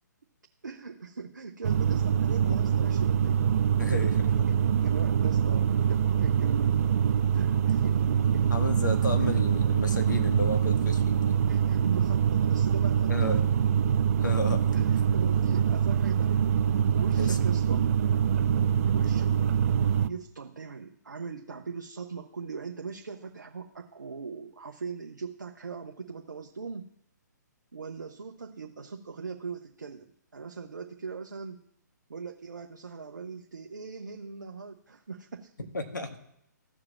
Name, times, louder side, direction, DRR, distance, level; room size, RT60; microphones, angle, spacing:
voice 1, 0.6-3.5 3.8-6.8 7.3-8.5 9.2-9.3 11.5-13.4 14.7-17.9 18.9-19.3 20.1-26.9 27.7-30.1 30.3-31.6 32.1-35.5, right 5 dB, 75° right, 3 dB, 0.9 m, -40 dB
sound 1, 1.6-20.1, right 8 dB, 50° right, 0.5 m, -24 dB
voice 2, 3.8-4.1 4.4-4.5 8.5-11.4 13.1-13.5 14.2-14.6 17.2-17.4 35.7-36.2, left 2 dB, 80° left, 6 dB, 1.7 m, -32 dB
14.5 x 4.9 x 7.1 m, 0.76 s
figure-of-eight pair, 130°, 10 cm